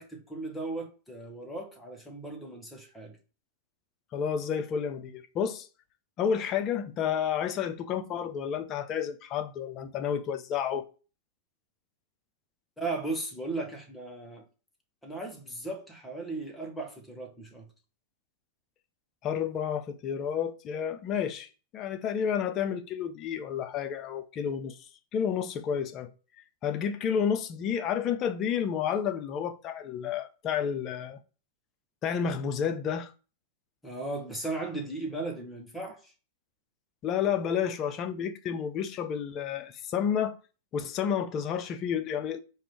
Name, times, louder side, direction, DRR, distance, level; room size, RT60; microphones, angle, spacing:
voice 1, 0.0-3.2 12.8-14.4 15.0-17.7 33.8-36.1, right 2 dB, 5° left, 1.1 m, -36 dB
voice 2, 4.1-5.7 6.2-10.9 19.2-21.5 21.7-24.8 25.1-26.1 26.6-31.2 32.0-33.1 37.0-40.3 40.7-42.4, left 8 dB, 35° left, 0.5 m, -30 dB
4.7 x 2.6 x 3.0 m
hypercardioid pair, 115°, 0 cm